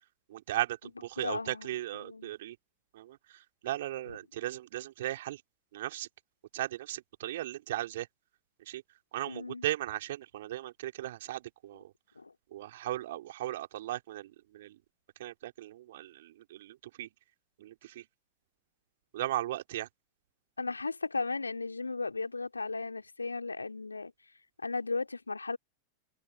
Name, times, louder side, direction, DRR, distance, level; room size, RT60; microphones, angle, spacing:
voice 1, 0.3-2.6 2.9-5.4 5.7-6.1 6.5-8.1 8.7-8.8 9.1-11.9 12.5-14.8 15.2-17.1 17.6-18.1 19.1-19.9, right 14 dB, 55° right, 3.7 m, -37 dB
voice 2, 1.2-2.3 4.1-4.2 9.3-9.6 12.2-12.3 20.6-24.1 24.6-25.6, left 3 dB, 80° left, 2.9 m, -36 dB
open air
figure-of-eight pair, 90°, 0 cm